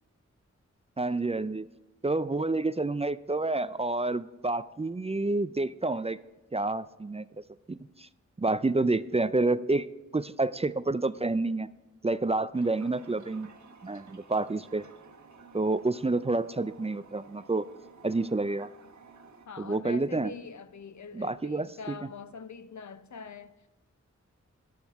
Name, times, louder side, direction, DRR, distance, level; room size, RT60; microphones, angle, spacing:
voice 1, 1.0-1.7 2.0-6.2 6.5-7.3 7.7-8.1 8.4-11.7 12.0-13.5 13.8-14.9 15.5-17.7 18.0-18.7 19.6-20.3 21.1-22.0, right 2 dB, 20° right, 0.4 m, -29 dB
Toilet flush, 12.5-19.5, right 4 dB, 75° right, 1.4 m, -54 dB
voice 2, 19.5-23.5, left 5 dB, 70° left, 0.7 m, -44 dB
13.5 x 11.0 x 3.5 m
cardioid pair, 45°, 29 cm